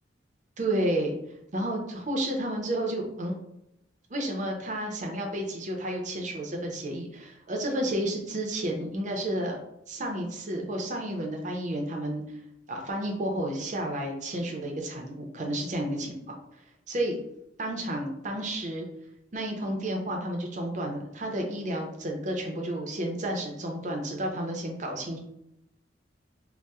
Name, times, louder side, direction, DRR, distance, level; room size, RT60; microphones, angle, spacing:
voice 1, 0.6-1.1 1.5-3.3 4.1-9.6 9.9-12.2 12.7-16.2 16.9-17.1 17.6-18.9 19.3-25.2, right 1 dB, 40° right, 1 dB, 0.6 m, -31 dB
4.1 x 2.1 x 2.3 m, 0.82 s
head